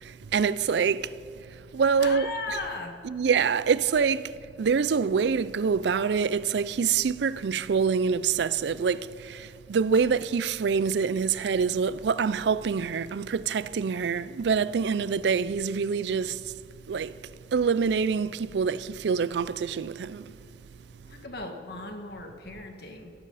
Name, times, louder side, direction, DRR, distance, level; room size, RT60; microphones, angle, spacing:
voice 1, 0.0-1.1 1.7-2.3 3.0-16.5 16.9-17.2 17.5-20.2, right 6 dB, 70° right, 0.4 m, -26 dB
voice 2, 2.0-3.0 21.1-23.1, left 3 dB, 60° left, 1.9 m, -37 dB
16.0 x 14.0 x 4.1 m
head